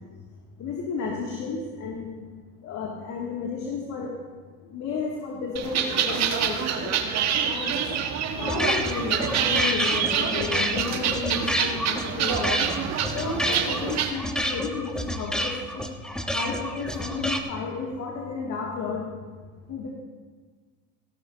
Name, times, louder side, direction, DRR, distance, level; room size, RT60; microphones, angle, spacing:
voice 1, 0.6-2.1 2.6-4.1 4.7-6.9 7.5-8.0 8.4-12.6 13.1-15.8 16.3-19.0 19.7-19.9, left 5 dB, 55° left, -2 dB, 2.3 m, -32 dB
sound 1, 5.6-14.1, right 8 dB, 50° right, 1.4 m, -27 dB
sound 2, 8.4-17.4, equal, ahead, 1.1 m, -29 dB
16.5 x 13.5 x 2.7 m, 1.4 s
supercardioid pair, 85°, 33 cm